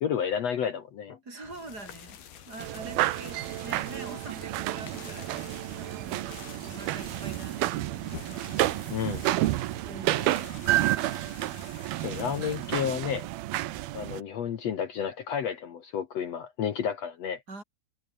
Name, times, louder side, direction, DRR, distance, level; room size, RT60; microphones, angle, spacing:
voice 1, 0.0-1.2 8.9-9.2 12.0-13.3 13.9-17.4, left 8 dB, 60° left, 1.9 m, -31 dB
voice 2, 1.2-5.4 5.8-8.5 9.8-10.6 17.5-17.6, right 2 dB, 25° right, 8.1 m, -45 dB
sound 1, 1.4-12.8, left 9 dB, 75° left, 4.4 m, -48 dB
sound 2, 2.6-14.2, right 16 dB, 80° right, 2.8 m, -30 dB
omnidirectional pair, 4.4 m